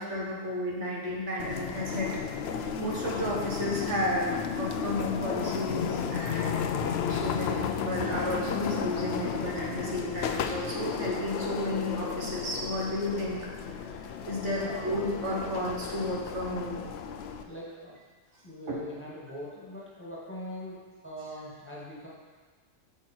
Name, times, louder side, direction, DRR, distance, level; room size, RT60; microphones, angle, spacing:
voice 1, 0.0-2.1 2.5-6.8 7.1-13.4 14.3-16.8 18.7-18.8, left 1 dB, 65° right, -4 dB, 1.6 m, -32 dB
sound 1, 1.4-17.4, left 7 dB, 65° left, 0.8 m, -33 dB
voice 2, 14.4-15.0 17.4-18.0 18.4-22.1, left 1 dB, 10° left, -6 dB, 1.9 m, -42 dB
8.7 x 6.3 x 4.4 m, 1.4 s
omnidirectional pair, 1.3 m